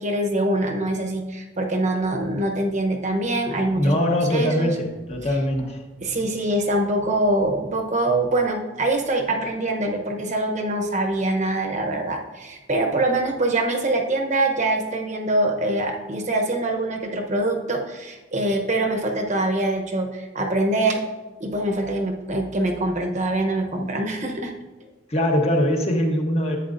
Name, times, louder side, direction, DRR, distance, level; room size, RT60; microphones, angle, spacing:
voice 1, 0.0-4.7 5.2-5.3 6.0-21.0 21.4-24.5, right 2 dB, 40° right, 3 dB, 0.9 m, -24 dB
voice 2, 3.7-5.8 25.1-26.6, equal, 35° left, 1 dB, 1.1 m, -22 dB
11.0 x 8.1 x 2.6 m, 1.2 s
head